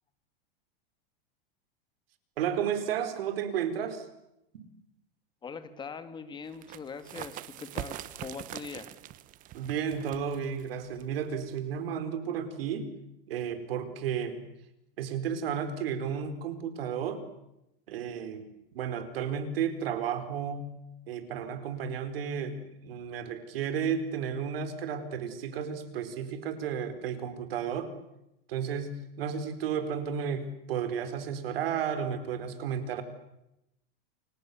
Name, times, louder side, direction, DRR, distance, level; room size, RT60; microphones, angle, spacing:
voice 1, 2.4-4.1 4.5-4.6 9.5-12.9 13.3-14.4 15.0-17.2 17.9-20.7 21.1-27.9 28.5-33.0, right 7 dB, 80° right, 10 dB, 4.8 m, -33 dB
voice 2, 5.4-9.0, left 5 dB, 15° left, 11 dB, 2.0 m, -42 dB
sound 1, 6.5-11.9, right 14 dB, 30° right, 1.0 m, -43 dB
29.0 x 25.0 x 7.1 m, 0.85 s
supercardioid pair, 155°, 29 cm